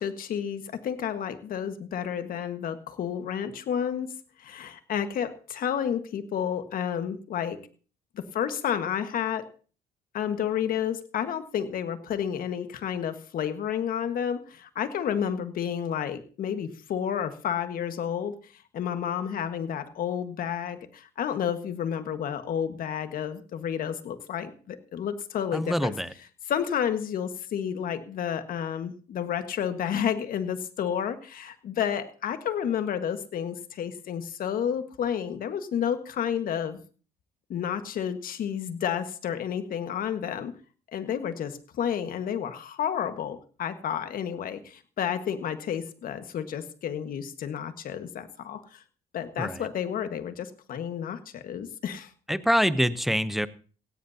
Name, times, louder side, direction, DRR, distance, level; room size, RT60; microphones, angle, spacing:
voice 1, 0.0-7.6 8.1-9.5 10.1-25.9 26.5-36.8 37.5-40.5 40.9-48.8 49.1-52.1, left 8 dB, 55° left, 9 dB, 1.6 m, -31 dB
voice 2, 25.5-26.1 49.4-49.7 52.3-53.5, equal, ahead, 14 dB, 0.7 m, -25 dB
17.0 x 16.5 x 2.8 m, 0.38 s
cardioid pair, 110°, 17 cm